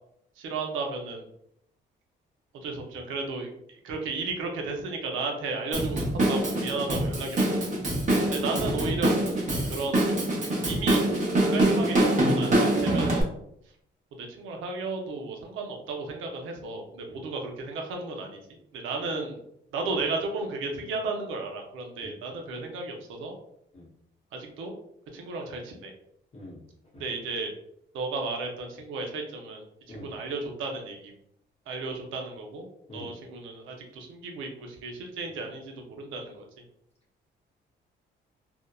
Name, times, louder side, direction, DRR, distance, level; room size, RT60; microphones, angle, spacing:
voice 1, 0.4-1.3 2.6-7.7 8.3-10.1 10.7-11.0 11.5-13.3 14.2-18.4 18.7-19.4 19.7-23.3 24.3-24.7 25.1-25.9 27.0-27.5 27.9-31.1 31.7-32.6 32.9-36.4, right 3 dB, 85° right, 2 dB, 0.6 m, -34 dB
Drum kit / Drum, 5.7-13.2, right 1 dB, 40° right, 0.8 m, -25 dB
voice 2, 17.1-17.2 22.0-22.1 23.7-23.9 26.3-26.6 26.9-27.0 29.9-30.2 32.9-33.1, left 1 dB, 30° left, -6 dB, 0.7 m, -44 dB
2.7 x 2.1 x 2.3 m, 0.73 s
cardioid pair, 90°, 20 cm